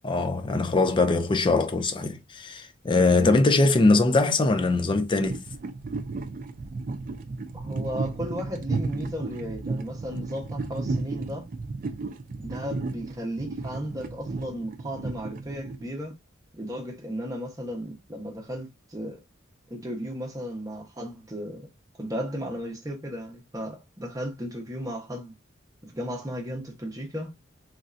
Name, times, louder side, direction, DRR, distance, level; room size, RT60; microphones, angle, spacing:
voice 1, 0.0-5.4, left 3 dB, 25° left, 0.4 m, -22 dB
voice 2, 3.2-3.7 7.5-11.5 12.4-16.1 16.5-19.2 19.7-21.7 22.0-25.3 25.8-27.3, equal, 20° right, 0.9 m, -35 dB
sound 1, 5.2-16.1, right 3 dB, 45° right, 0.4 m, -33 dB
3.2 x 2.6 x 2.4 m
head